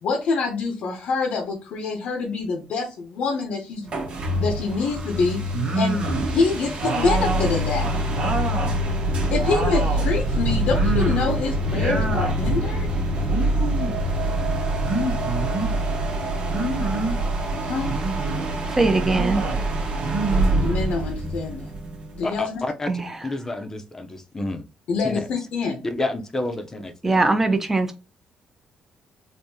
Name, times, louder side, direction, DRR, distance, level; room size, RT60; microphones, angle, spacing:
voice 1, 0.0-3.9 4.4-6.0 6.3-7.9 9.3-12.9 17.6-17.9 20.6-21.8 22.1-22.6 24.9-25.8, left 4 dB, 75° left, 0.7 m, -26 dB
sound 1, 3.9-22.4, right 1 dB, 55° right, 1.0 m, -25 dB
ooh aah, 5.5-6.3 6.8-8.8 9.2-10.1 10.7-11.4 11.6-12.4 13.2-14.0 14.8-15.7 16.5-17.2 17.9-18.5 19.0-19.6 20.0-21.1, right 3 dB, 80° right, 1.3 m, -28 dB
voice 2, 18.7-19.4 22.9-23.1 27.0-28.0, right 3 dB, 15° right, 0.6 m, -21 dB
voice 3, 22.2-22.9 23.2-24.6 25.0-25.2 25.8-27.3, left 2 dB, 25° left, 0.6 m, -29 dB
3.5 x 2.7 x 2.7 m
cardioid pair, 110°, 2 cm